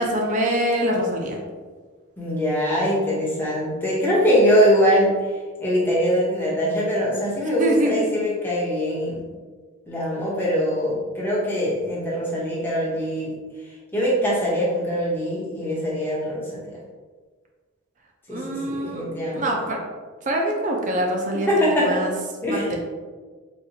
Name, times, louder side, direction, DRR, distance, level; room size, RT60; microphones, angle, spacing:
voice 1, 0.0-1.4 7.6-8.0 18.3-19.1 19.3-19.8 20.3-21.5 21.9-22.1 22.5-22.8, right 1 dB, 35° right, 0 dB, 0.4 m, -24 dB
voice 2, 2.2-5.3 5.6-9.3 9.9-13.3 13.9-16.8 18.3-19.7 21.5-22.0 22.4-22.7, equal, 10° left, -6 dB, 0.8 m, -22 dB
4.1 x 2.4 x 2.7 m, 1.4 s
head